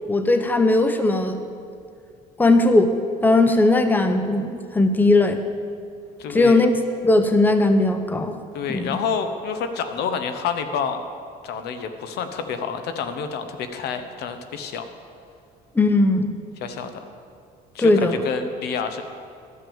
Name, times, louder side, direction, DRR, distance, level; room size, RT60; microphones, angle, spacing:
voice 1, 0.1-1.4 2.4-2.9 3.2-5.4 6.3-6.7 7.0-8.3 8.7-9.0 15.8-16.3 17.8-18.2, left 2 dB, 10° left, 8 dB, 0.7 m, -18 dB
voice 2, 6.2-6.6 8.5-11.0 11.4-14.8 16.6-17.0 17.7-17.9 18.2-19.0, left 6 dB, 75° left, 8 dB, 0.9 m, -28 dB
13.0 x 6.1 x 7.1 m, 2.4 s
cardioid pair, 110°, 17 cm